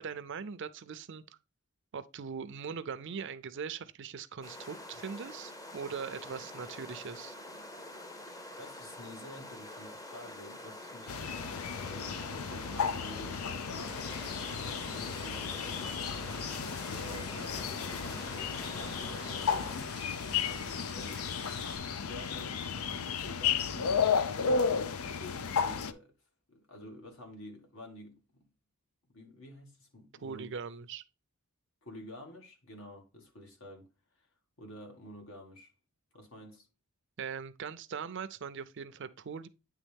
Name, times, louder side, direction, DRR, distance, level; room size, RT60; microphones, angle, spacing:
voice 1, 0.0-1.4 1.9-7.4 30.2-31.0 37.2-39.5, right 6 dB, 55° right, 0.5 m, -41 dB
sound 1, 4.4-19.8, left 1 dB, 15° left, 0.7 m, -46 dB
voice 2, 8.3-11.2 11.8-14.0 14.8-15.8 16.5-19.9 20.4-21.5 22.0-22.7 23.2-26.1 26.5-28.4 29.1-30.6 31.8-33.9 34.2-34.3 34.6-35.7 36.1-36.7, left 1 dB, 75° left, 1.9 m, -50 dB
sound 2, 11.1-25.9, left 6 dB, 90° left, 0.5 m, -33 dB
Liquid, 13.6-21.8, left 3 dB, 55° left, 1.6 m, -47 dB
9.1 x 3.5 x 3.4 m
head